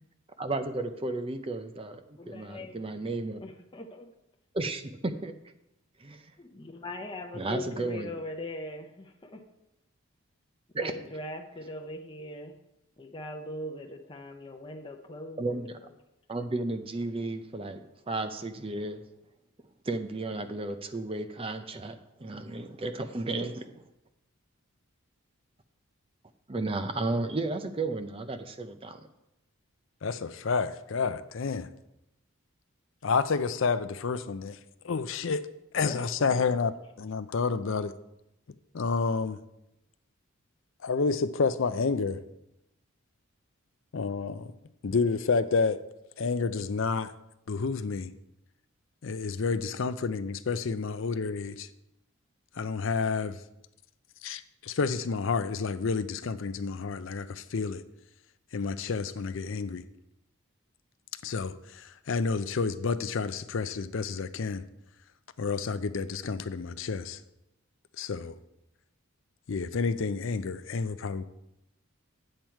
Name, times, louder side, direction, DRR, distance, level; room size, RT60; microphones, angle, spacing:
voice 1, 0.4-3.4 4.5-5.3 6.0-6.2 7.3-8.2 10.7-11.1 15.4-15.8 16.3-19.0 19.8-23.7 26.5-29.0, right 2 dB, 25° right, 0.5 m, -33 dB
voice 2, 2.2-3.1 3.4-4.1 6.4-9.4 10.8-12.5 13.0-15.6 35.8-36.6, left 1 dB, 20° left, 0.7 m, -41 dB
voice 3, 30.0-31.7 33.0-34.6 34.8-35.5 35.7-37.9 38.7-39.4 40.8-42.2 43.9-44.5 44.8-45.8 46.2-47.1 47.5-48.1 49.0-51.7 52.6-53.4 54.2-57.8 58.5-59.8 61.2-64.6 65.4-67.2 68.0-68.4 69.5-71.2, left 4 dB, 60° left, 0.5 m, -29 dB
8.8 x 7.7 x 4.5 m
head